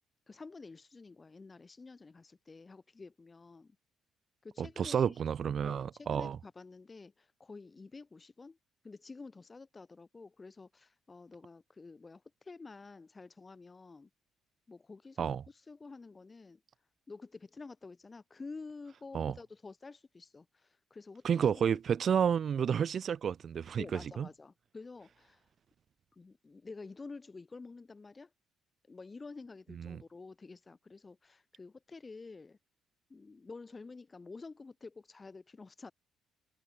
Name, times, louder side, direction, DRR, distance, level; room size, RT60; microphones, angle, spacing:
voice 1, 0.3-3.8 4.4-5.2 5.6-8.6 8.8-14.1 14.7-16.6 17.1-21.8 23.8-25.5 26.1-28.3 28.9-32.6 33.1-35.9, left 3 dB, 30° left, 2.8 m, -50 dB
voice 2, 4.6-6.4 15.2-15.4 19.1-19.3 21.2-24.3 29.8-30.0, right 8 dB, 55° right, 0.3 m, -31 dB
supercardioid pair, 60°, 0 cm